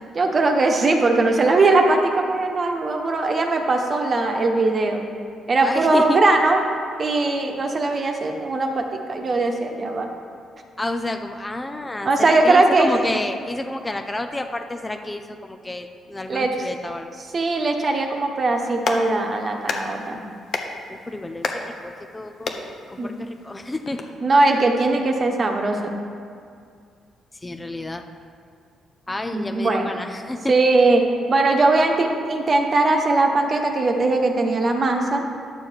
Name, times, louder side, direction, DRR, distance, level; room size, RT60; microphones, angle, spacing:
voice 1, 0.1-5.0 5.5-6.6 7.0-10.1 12.0-13.0 16.3-16.7 17.3-20.2 23.0-23.1 24.2-26.0 29.3-29.9 30.5-35.3, right 2 dB, 40° right, 3 dB, 1.2 m, -20 dB
voice 2, 5.6-6.2 10.8-17.1 20.9-24.0 27.4-28.0 29.1-30.5, left 2 dB, 15° left, 6 dB, 0.6 m, -30 dB
Clapping, 18.5-24.0, left 4 dB, 55° left, 0.9 m, -33 dB
10.5 x 6.8 x 4.6 m, 2.3 s
cardioid pair, 90°, 0 cm